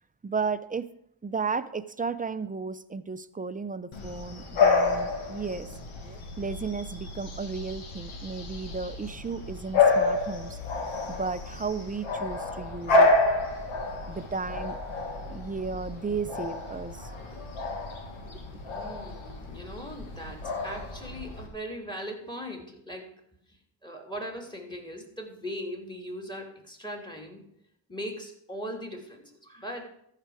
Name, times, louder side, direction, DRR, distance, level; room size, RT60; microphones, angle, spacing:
voice 1, 0.2-0.9 1.2-5.7 6.0-10.6 11.1-13.1 14.1-14.8 15.3-17.1 18.2-18.3, right 4 dB, 20° right, 12 dB, 0.6 m, -34 dB
Bark / Bird vocalization bird call bird song, 3.9-21.5, left 3 dB, 85° left, 1.8 m, -29 dB
voice 2, 18.6-23.1 23.8-27.4 27.9-29.8, equal, 10° left, 3 dB, 2.8 m, -39 dB
13.5 x 5.8 x 4.9 m, 0.70 s
cardioid pair, 65°, 47 cm